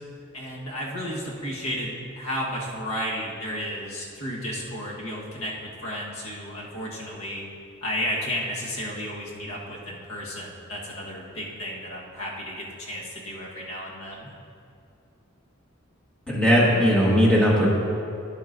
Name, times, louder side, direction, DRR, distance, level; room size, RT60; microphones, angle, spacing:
voice 1, 0.3-5.5 5.8-7.4 7.8-14.3, equal, 85° left, -3 dB, 1.4 m, -33 dB
voice 2, 16.3-17.8, equal, 5° left, -6 dB, 1.6 m, -18 dB
11.5 x 7.7 x 2.6 m, 2.5 s
head